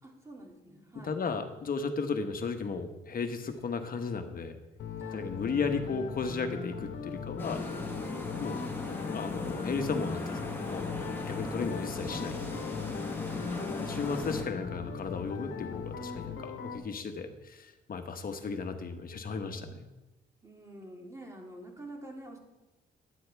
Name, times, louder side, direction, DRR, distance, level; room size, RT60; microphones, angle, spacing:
voice 1, 0.0-1.2 5.0-5.3 13.2-13.5 20.4-22.4, right 1 dB, 15° right, 0 dB, 2.5 m, -48 dB
voice 2, 1.0-4.6 5.1-7.6 8.4-8.6 9.1-10.9 11.2-12.4 13.8-19.9, left 5 dB, 45° left, 6 dB, 1.2 m, -35 dB
sound 1, 4.8-16.8, left 6 dB, 75° left, 1.2 m, -39 dB
sound 2, 7.4-14.4, left 2 dB, 10° left, 1.7 m, -37 dB
12.0 x 9.6 x 3.5 m, 1.0 s
cardioid pair, 90°, 20 cm